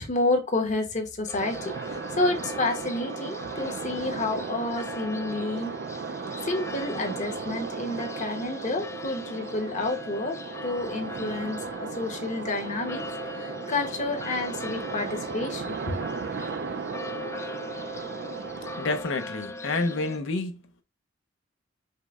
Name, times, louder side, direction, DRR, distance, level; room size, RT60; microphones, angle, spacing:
voice 1, 0.0-5.7 6.4-10.4 10.6-13.0 13.3-16.0, left 2 dB, 40° left, 0.9 m, -29 dB
sound 1, 1.3-20.2, left 1 dB, 15° left, 0.4 m, -41 dB
sound 2, 1.4-19.0, right 5 dB, 60° right, 0.4 m, -36 dB
voice 2, 18.8-20.6, left 3 dB, 85° left, 0.7 m, -29 dB
5.5 x 2.1 x 3.5 m
head